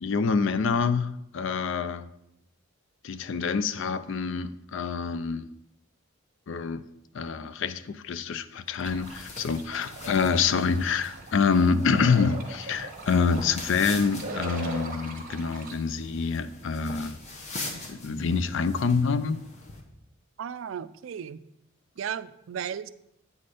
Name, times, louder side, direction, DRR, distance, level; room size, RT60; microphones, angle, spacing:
voice 1, 0.0-2.1 3.0-5.5 6.5-6.8 7.1-17.2 17.9-19.4, left 5 dB, 65° left, 0.4 m, -26 dB
sound 1, 8.8-15.7, right 2 dB, 45° right, 1.0 m, -40 dB
sound 2, 8.9-19.8, left 2 dB, 35° left, 1.0 m, -42 dB
voice 2, 20.4-21.4 22.0-22.9, right 8 dB, 70° right, 0.3 m, -35 dB
8.4 x 4.3 x 4.9 m
head